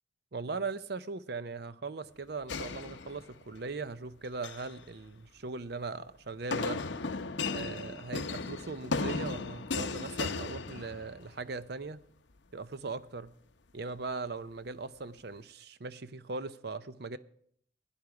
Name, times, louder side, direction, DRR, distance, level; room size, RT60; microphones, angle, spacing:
voice 1, 0.3-6.8 7.5-12.0 12.5-13.3 13.7-17.2, right 3 dB, 55° right, 0.6 m, -39 dB
sound 1, 2.5-3.6 4.2-4.7 6.5-11.3, left 4 dB, 70° left, 0.7 m, -36 dB
17.0 x 10.5 x 4.8 m
head